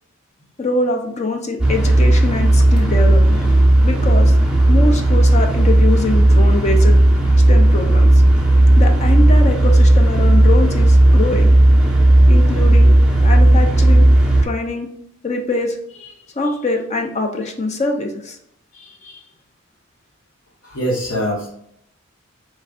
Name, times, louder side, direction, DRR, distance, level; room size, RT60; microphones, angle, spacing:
voice 1, 0.6-3.5 3.8-4.3 4.7-7.0 7.5-8.2 8.8-11.6 12.3-12.9 13.2-14.1 14.4-14.9 15.2-18.4 18.7-19.2, left 2 dB, 35° left, 4 dB, 0.6 m, -23 dB
sound 1, 1.6-14.4, right 1 dB, 5° right, 0.9 m, -12 dB
voice 2, 20.6-21.5, equal, 80° left, -6 dB, 1.2 m, -22 dB
4.8 x 3.2 x 2.5 m, 0.72 s
head